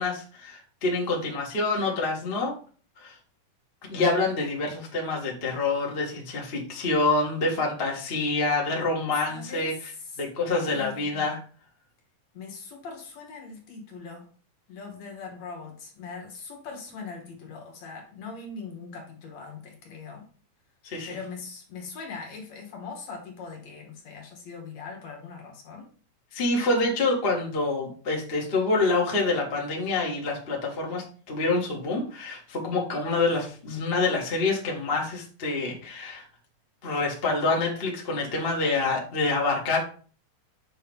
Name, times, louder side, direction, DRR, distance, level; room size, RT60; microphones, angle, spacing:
voice 1, 0.0-2.5 3.0-3.2 3.9-9.7 10.2-11.4 20.8-21.2 26.3-36.2 36.8-39.8, left 3 dB, 40° left, -2 dB, 0.8 m, -27 dB
voice 2, 9.3-10.2 10.6-11.3 12.3-14.3 14.7-20.3 21.1-25.9, left 4 dB, 60° left, 1 dB, 2.5 m, -41 dB
7.0 x 3.2 x 5.2 m, 0.40 s
omnidirectional pair, 3.8 m